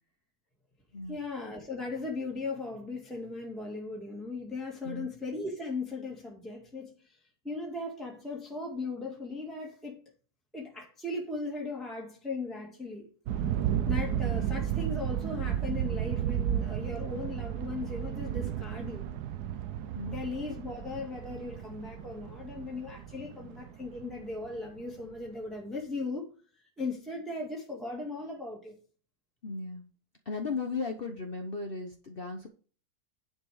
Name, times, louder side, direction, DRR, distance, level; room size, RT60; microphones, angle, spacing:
voice 1, 1.1-7.2 7.4-10.0 10.5-13.1 13.9-19.1 20.1-26.3 26.8-28.7, left 3 dB, ahead, 1.9 m, -38 dB
sound 1, 13.3-24.8, right 10 dB, 75° right, 1.3 m, -33 dB
voice 2, 29.4-29.8 30.3-32.5, left 4 dB, 40° left, 1.1 m, -36 dB
10.5 x 5.3 x 4.9 m
omnidirectional pair, 1.7 m